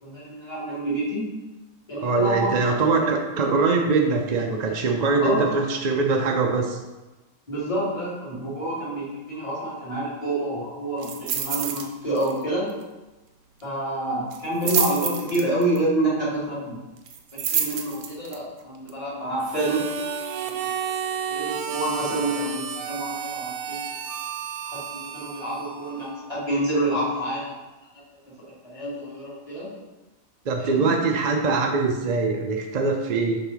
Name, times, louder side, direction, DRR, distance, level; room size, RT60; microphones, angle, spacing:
voice 1, 0.0-1.4 1.9-2.5 5.2-5.5 7.5-12.7 13.6-16.8 17.3-19.9 20.5-20.6 21.2-23.8 24.6-27.5 28.4-29.7 30.6-30.9, right 1 dB, 25° left, -8 dB, 2.4 m, -28 dB
voice 2, 2.0-6.8 30.5-33.4, right 4 dB, 50° right, 2 dB, 0.5 m, -22 dB
sound 1, 11.0-11.9 12.2-12.4 12.7-12.8 14.3-15.8 17.1-18.4 18.9-19.0, right 8 dB, 65° right, 1.0 m, -27 dB
Harmonica, 19.4-26.3, right 7 dB, 85° right, 1.1 m, -32 dB
7.1 x 4.9 x 3.9 m, 1.1 s
omnidirectional pair, 1.5 m